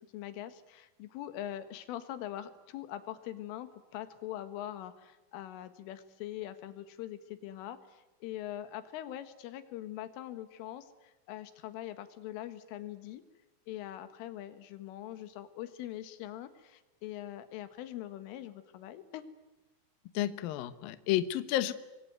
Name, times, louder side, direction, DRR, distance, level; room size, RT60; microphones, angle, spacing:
voice 1, 0.0-13.2 13.7-19.3, left 12 dB, 90° left, 11 dB, 4.1 m, -43 dB
voice 2, 20.1-21.7, left 13 dB, 75° left, 13 dB, 2.2 m, -31 dB
25.5 x 22.5 x 9.4 m, 1.1 s
omnidirectional pair, 5.5 m